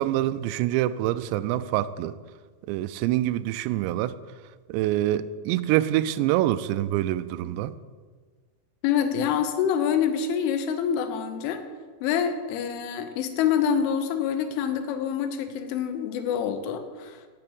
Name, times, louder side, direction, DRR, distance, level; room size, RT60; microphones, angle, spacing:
voice 1, 0.0-2.1 2.7-4.2 4.7-7.7, right 14 dB, 85° right, 13 dB, 2.6 m, -25 dB
voice 2, 8.8-11.6 12.0-17.2, left 8 dB, 90° left, 8 dB, 3.4 m, -26 dB
8.9 x 7.8 x 7.9 m, 1.5 s
omnidirectional pair, 5.4 m